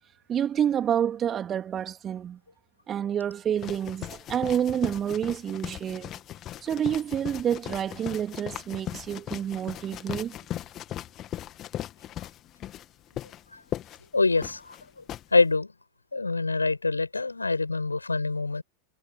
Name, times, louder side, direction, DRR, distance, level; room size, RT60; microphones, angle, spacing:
voice 1, 0.3-2.4 2.9-6.1 6.6-10.3, right 9 dB, 25° right, 3.2 m, -28 dB
sound 1, 3.6-15.2, left 12 dB, 30° left, 2.5 m, -38 dB
voice 2, 14.1-14.7 15.3-15.7 16.1-18.6, left 3 dB, 80° left, 6.8 m, -25 dB
figure-of-eight pair, 90°, 0 cm